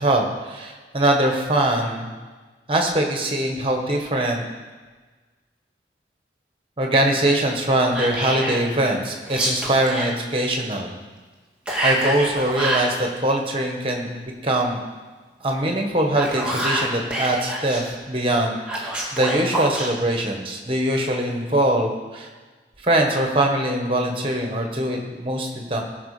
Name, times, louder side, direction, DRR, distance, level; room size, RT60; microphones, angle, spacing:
voice 1, 0.0-2.1 2.7-4.4 6.8-10.9 11.8-14.8 15.4-22.3 22.8-25.8, right 1 dB, 30° right, 2 dB, 1.6 m, -22 dB
Whispering, 7.9-8.6 9.2-10.1 11.7-12.9 16.0-17.8 18.7-19.9, right 1 dB, 5° right, 2.0 m, -26 dB
18.0 x 6.3 x 5.1 m, 1.3 s
head